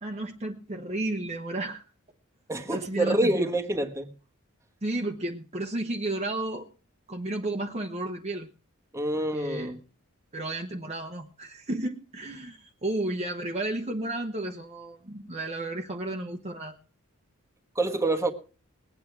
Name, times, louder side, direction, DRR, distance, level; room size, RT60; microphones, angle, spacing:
voice 1, 0.0-1.8 2.7-3.5 4.8-6.7 7.1-8.5 9.1-9.7 10.3-16.8, right 2 dB, 30° right, 3 dB, 1.0 m, -32 dB
voice 2, 2.5-4.1 8.9-9.8 17.7-18.3, right 2 dB, 15° right, 4 dB, 1.3 m, -27 dB
20.5 x 8.6 x 4.7 m, 0.37 s
head